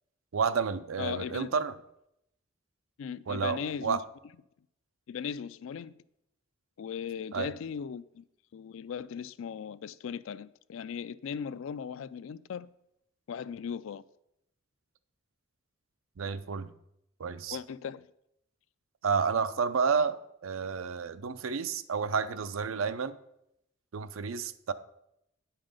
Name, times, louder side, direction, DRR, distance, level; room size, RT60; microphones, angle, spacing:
voice 1, 0.3-1.7 3.3-4.0 7.3-7.5 16.2-16.7 17.2-17.6 19.0-23.1 23.9-24.7, right 5 dB, 75° right, 0.5 m, -30 dB
voice 2, 1.0-1.5 3.0-4.0 5.1-5.9 6.8-8.2 8.5-12.7 13.3-14.0 17.5-18.1, left 7 dB, 70° left, 0.3 m, -38 dB
9.7 x 5.7 x 5.1 m
head